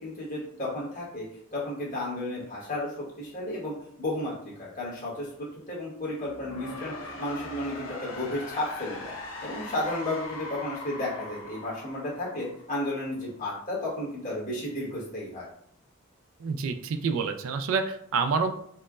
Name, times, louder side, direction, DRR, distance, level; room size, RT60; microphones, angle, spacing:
voice 1, 0.0-1.2 1.5-3.7 4.0-5.3 5.7-6.9 7.2-9.1 9.4-15.5, left 1 dB, 35° left, -6 dB, 1.2 m, -33 dB
sound 1, 6.2-13.1, left 2 dB, 65° left, 0.7 m, -41 dB
voice 2, 16.4-18.5, right 5 dB, 70° right, 8 dB, 0.3 m, -28 dB
4.3 x 2.1 x 2.4 m, 0.68 s
head